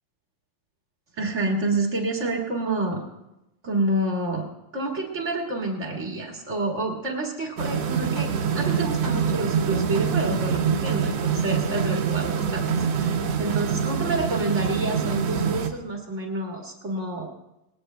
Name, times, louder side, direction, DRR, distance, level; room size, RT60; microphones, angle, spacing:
voice 1, 1.2-3.0 3.6-4.4 4.7-12.7 12.9-17.3, right 2 dB, 30° right, -1 dB, 1.4 m, -28 dB
sound 1, 7.6-15.7, right 6 dB, 80° right, 1.4 m, -25 dB
21.5 x 18.5 x 2.2 m, 0.91 s
omnidirectional pair, 4.1 m